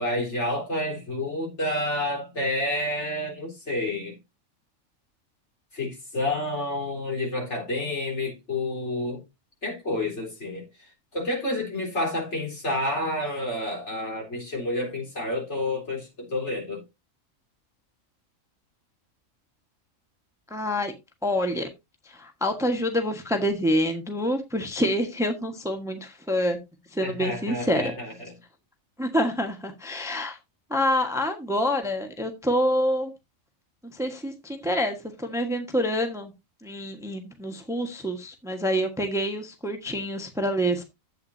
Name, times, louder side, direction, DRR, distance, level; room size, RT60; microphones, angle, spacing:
voice 1, 0.0-4.2 5.7-9.2 9.6-10.7 11.1-16.8 27.0-28.3, left 1 dB, 60° left, 4.3 m, -29 dB
voice 2, 20.5-20.9 21.2-21.7 22.1-26.6 26.9-27.9 29.0-30.4 30.7-33.1 33.9-36.3 36.6-40.8, equal, ahead, 1.3 m, -27 dB
11.5 x 8.3 x 2.7 m
omnidirectional pair, 1.4 m